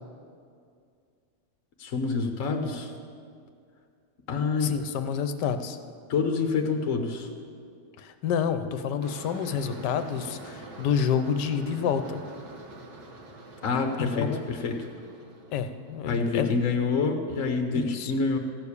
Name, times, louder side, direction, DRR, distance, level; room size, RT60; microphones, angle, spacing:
voice 1, 1.8-2.9 4.3-4.7 6.1-7.3 13.6-14.9 16.1-18.4, left 4 dB, 50° left, 4 dB, 1.1 m, -27 dB
voice 2, 4.6-5.8 8.0-12.3 14.0-14.4 15.5-16.6 17.7-18.1, left 7 dB, 70° left, 9 dB, 1.3 m, -28 dB
sound 1, 9.0-16.1, right 2 dB, 60° right, 1.7 m, -46 dB
15.0 x 6.8 x 8.4 m, 2.3 s
omnidirectional pair, 2.0 m